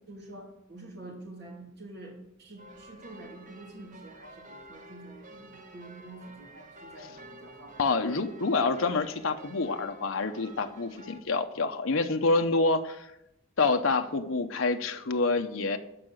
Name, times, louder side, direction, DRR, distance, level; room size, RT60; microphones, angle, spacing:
voice 1, 0.1-7.9, right 2 dB, 55° right, 0 dB, 2.9 m, -47 dB
sound 1, 2.6-11.2, right 1 dB, 40° right, 1.1 m, -51 dB
voice 2, 7.8-13.1 13.6-15.8, left 3 dB, 75° left, 6 dB, 0.8 m, -27 dB
14.0 x 4.9 x 7.8 m, 0.83 s
head